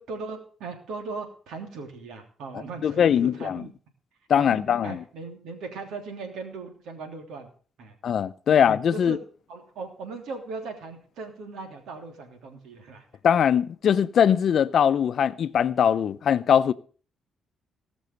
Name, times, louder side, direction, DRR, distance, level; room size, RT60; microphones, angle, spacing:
voice 1, 0.0-3.7 4.4-7.5 7.8-7.9 8.5-8.6 8.9-9.2 9.5-13.1, right 4 dB, 80° right, 3.1 m, -38 dB
voice 2, 2.8-3.6 4.3-5.0 8.0-9.2 13.2-16.7, left 8 dB, 60° left, 0.7 m, -21 dB
18.5 x 6.2 x 6.7 m
cardioid pair, 90°, 0 cm